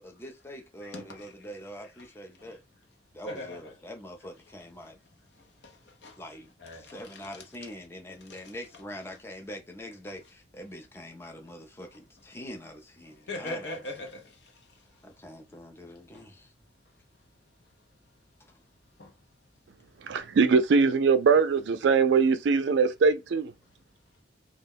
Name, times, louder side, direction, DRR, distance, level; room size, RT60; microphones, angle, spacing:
voice 1, 0.0-2.6 3.1-5.0 6.2-13.8 15.0-16.5, equal, 15° left, 0.4 m, -44 dB
voice 2, 0.8-1.5 2.4-2.6 3.3-3.7 4.8-4.9 5.6-6.2 6.6-7.4 8.3-8.4 13.3-14.7 16.1-16.3 19.0-19.1, left 1 dB, 75° left, 0.7 m, -41 dB
voice 3, 20.1-23.5, right 5 dB, 80° right, 0.4 m, -22 dB
2.3 x 2.1 x 3.4 m
head